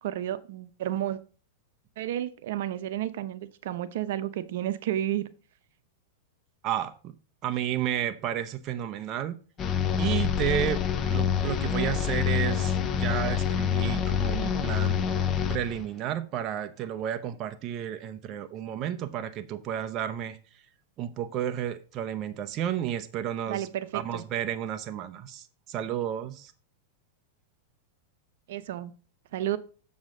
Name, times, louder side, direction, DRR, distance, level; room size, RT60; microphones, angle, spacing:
voice 1, 0.0-1.2 2.0-5.3 23.5-24.2 28.5-28.9 29.3-29.6, right 12 dB, 65° right, 13 dB, 0.8 m, -31 dB
voice 2, 6.6-7.1 7.4-9.4 10.0-15.0 15.5-20.4 21.0-23.7 23.9-26.5, right 10 dB, 30° right, 8 dB, 0.7 m, -32 dB
sound 1, 9.6-15.9, left 8 dB, 25° left, 0.8 m, -27 dB
7.4 x 7.3 x 3.8 m, 0.37 s
supercardioid pair, 150°, 0 cm